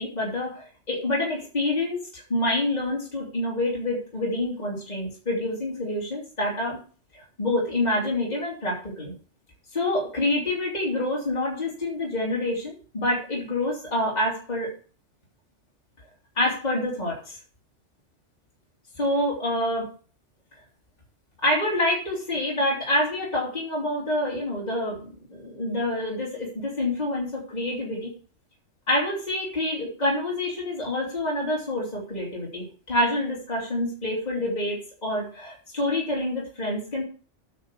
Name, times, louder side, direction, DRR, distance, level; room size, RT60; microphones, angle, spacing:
voice 1, 0.0-6.8 7.1-9.1 9.7-14.7 16.4-17.4 18.9-19.9 21.4-28.1 28.9-37.0, left 1 dB, 35° left, -4 dB, 2.9 m, -27 dB
9.3 x 5.4 x 7.4 m, 0.40 s
omnidirectional pair, 1.2 m